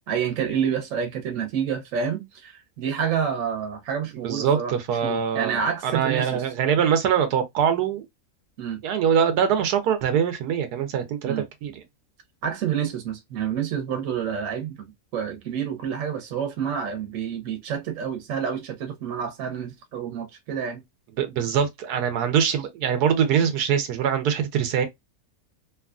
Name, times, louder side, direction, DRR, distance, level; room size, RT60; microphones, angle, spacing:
voice 1, 0.1-4.7 5.0-6.4 8.6-8.8 11.2-11.8 12.4-20.8, right 7 dB, 60° right, 1.2 m, -28 dB
voice 2, 4.2-8.0 8.8-11.8 21.2-24.9, right 8 dB, 90° right, 1.2 m, -23 dB
3.0 x 2.3 x 2.3 m
omnidirectional pair, 1.6 m